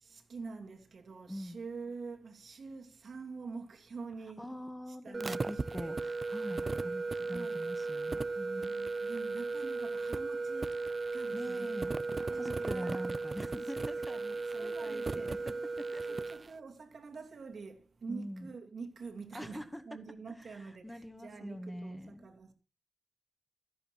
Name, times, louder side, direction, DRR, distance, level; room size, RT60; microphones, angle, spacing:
voice 1, 0.0-4.5 4.9-6.0 7.3-7.6 8.4-10.8 11.1-11.8 12.3-13.1 13.7-13.8 14.0-14.3 14.6-15.4 16.0-22.5, right 4 dB, 70° right, 2.6 m, -46 dB
voice 2, 4.4-8.7 11.3-11.9 12.3-16.3 18.1-18.5 19.3-19.8 20.6-22.3, equal, 5° left, 1.9 m, -44 dB
sound 1, 5.1-16.5, right 3 dB, 35° right, 0.6 m, -36 dB
13.5 x 11.0 x 4.4 m
wide cardioid pair, 115°, 0 cm